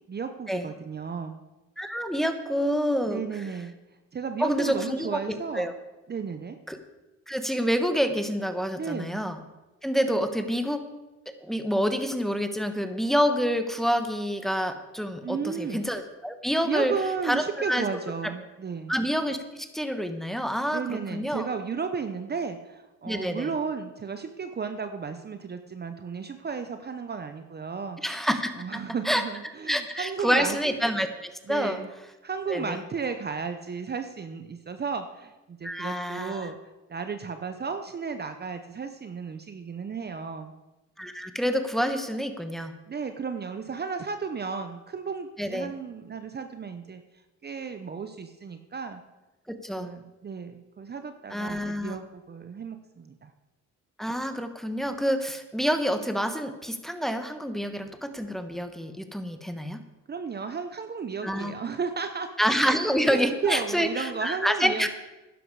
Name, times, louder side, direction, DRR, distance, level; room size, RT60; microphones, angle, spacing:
voice 1, 0.1-1.4 3.0-3.7 4.1-5.7 6.1-6.6 8.8-9.2 15.2-15.9 16.6-18.9 20.7-28.0 28.6-30.6 31.5-31.9 32.2-36.6 36.9-40.5 42.9-47.0 47.4-49.0 49.7-53.3 60.1-62.3 62.6-62.8 63.1-64.9, right 5 dB, 35° right, 8 dB, 0.8 m, -34 dB
voice 2, 1.8-3.2 4.4-5.7 6.7-6.8 7.3-9.4 9.8-10.8 11.5-16.9 17.2-17.8 18.9-21.5 23.0-23.5 28.0-29.2 29.7-31.8 32.5-32.8 35.6-36.5 41.0-42.7 45.4-45.7 49.5-49.9 51.3-52.0 54.0-59.8 61.2-61.5 62.4-64.9, equal, ahead, 7 dB, 1.2 m, -27 dB
12.0 x 10.5 x 4.8 m, 1.1 s
cardioid pair, 90°, 30 cm